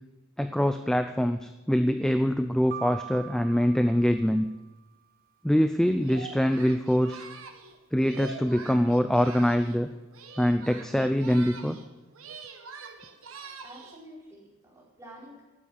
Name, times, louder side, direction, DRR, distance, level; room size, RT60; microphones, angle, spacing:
voice 1, 0.4-4.4 5.4-7.2 7.9-9.9 10.4-11.8, equal, 5° left, 8 dB, 0.4 m, -24 dB
sound 1, 2.7-4.8, right 10 dB, 45° right, 0.6 m, -42 dB
Singing, 6.0-9.8 10.1-11.9 12.1-14.0, right 4 dB, 70° right, 1.5 m, -44 dB
voice 2, 13.6-15.4, right 1 dB, 15° right, -6 dB, 4.7 m, -48 dB
12.0 x 8.8 x 8.3 m, 1.1 s
head